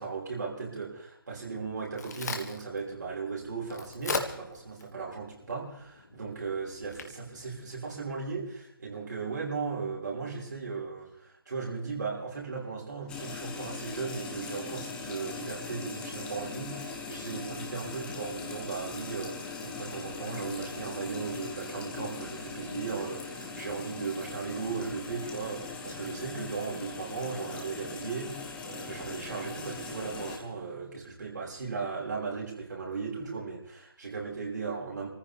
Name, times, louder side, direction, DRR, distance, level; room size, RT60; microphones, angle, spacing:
voice 1, 0.0-35.1, right 5 dB, 50° right, -3 dB, 5.6 m, -37 dB
Crack, 1.6-8.5, left 4 dB, 45° left, 1.8 m, -41 dB
sound 1, 13.1-30.4, left 4 dB, 5° left, 1.1 m, -40 dB
26.5 x 14.5 x 3.6 m, 0.72 s
figure-of-eight pair, 150°, 12 cm